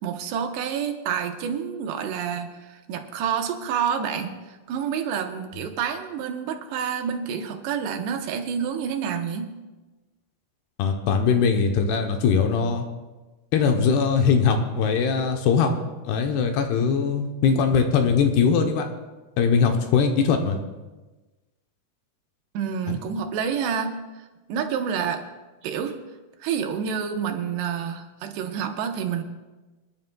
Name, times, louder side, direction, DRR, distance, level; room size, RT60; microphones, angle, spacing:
voice 1, 0.0-9.5 22.5-24.0 24.5-25.3 25.6-26.0 26.4-29.2, right 7 dB, 80° right, 5 dB, 2.9 m, -28 dB
voice 2, 10.8-12.9 13.5-15.7 16.0-18.9 19.4-20.6 22.9-23.0, left 6 dB, 75° left, 5 dB, 2.7 m, -21 dB
26.0 x 11.0 x 2.2 m, 1.2 s
omnidirectional pair, 5.0 m